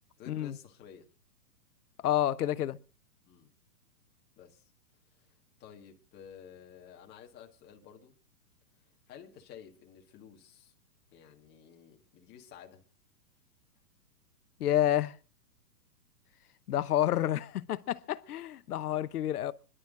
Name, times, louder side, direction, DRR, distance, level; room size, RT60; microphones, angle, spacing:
voice 1, 0.2-1.1 3.3-3.5 4.4-4.7 5.1-5.3 5.6-8.1 9.1-10.7 11.1-12.8, left 8 dB, 20° left, 1.8 m, -52 dB
voice 2, 2.0-2.8 14.6-15.2 16.7-19.5, left 12 dB, 70° left, 0.9 m, -29 dB
28.5 x 11.5 x 2.5 m
hypercardioid pair, 150°, 48 cm